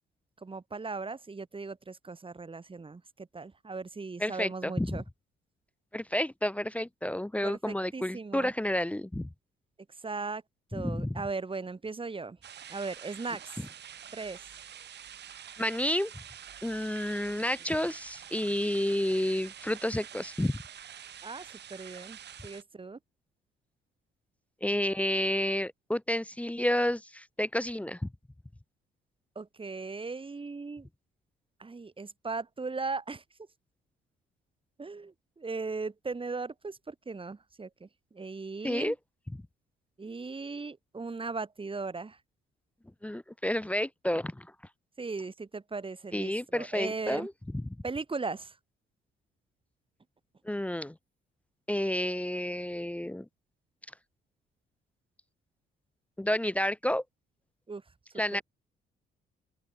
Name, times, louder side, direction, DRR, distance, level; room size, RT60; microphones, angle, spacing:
voice 1, 0.4-5.0 7.4-8.5 9.9-10.4 10.7-12.4 12.7-13.6 14.1-14.5 21.2-23.0 29.3-30.9 31.6-33.2 34.8-39.0 40.0-42.2 45.0-47.3 47.8-48.6 57.7-57.8, right 4 dB, 25° right, 4.5 m, -38 dB
voice 2, 4.2-5.0 5.9-9.3 10.7-11.2 15.6-16.1 16.6-20.5 24.6-28.1 38.6-38.9 43.0-44.5 46.1-47.3 50.4-51.0 51.7-53.3 56.2-57.0 58.2-58.4, left 1 dB, 5° left, 0.6 m, -30 dB
sound 1, 12.4-22.6, right 9 dB, 60° right, 2.1 m, -47 dB
open air
cardioid pair, 90°, 20 cm